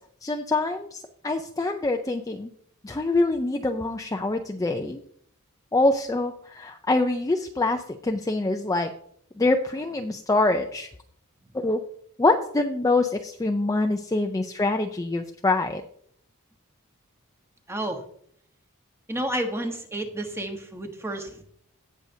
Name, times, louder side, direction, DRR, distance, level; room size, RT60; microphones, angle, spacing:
voice 1, 0.2-2.5 2.8-5.0 5.7-8.9 9.4-10.9 11.5-11.8 12.2-15.8, left 2 dB, 15° left, 4 dB, 0.4 m, -25 dB
voice 2, 17.7-18.1 19.1-21.4, right 1 dB, 10° right, 5 dB, 1.1 m, -31 dB
17.0 x 6.4 x 2.7 m, 0.64 s
head